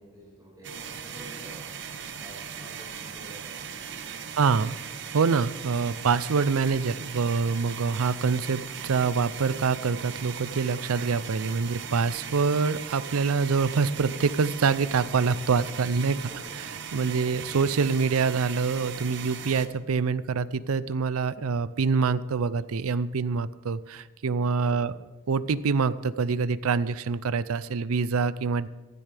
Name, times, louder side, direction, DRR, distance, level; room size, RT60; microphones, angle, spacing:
voice 1, 0.0-1.6 2.0-4.3 16.3-16.6 17.0-17.3, equal, 15° right, -6 dB, 5.1 m, -49 dB
sound 1, 0.6-19.7, right 7 dB, 55° right, 0.9 m, -39 dB
voice 2, 4.4-4.8 5.1-16.2 16.9-24.9 25.3-28.7, right 5 dB, 90° right, 16 dB, 0.5 m, -25 dB
15.5 x 12.5 x 3.4 m, 1.1 s
head